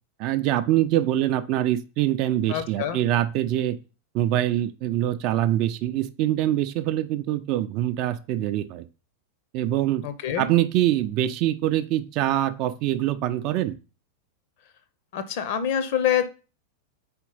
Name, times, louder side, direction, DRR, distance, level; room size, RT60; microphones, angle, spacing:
voice 1, 0.2-3.8 4.1-8.8 9.5-10.0 10.4-13.8, right 13 dB, 40° right, 11 dB, 0.5 m, -24 dB
voice 2, 2.5-3.0 10.0-10.5 15.1-16.3, left 9 dB, 50° left, 11 dB, 0.8 m, -26 dB
4.5 x 4.4 x 5.5 m, 0.33 s
figure-of-eight pair, 90°, 0 cm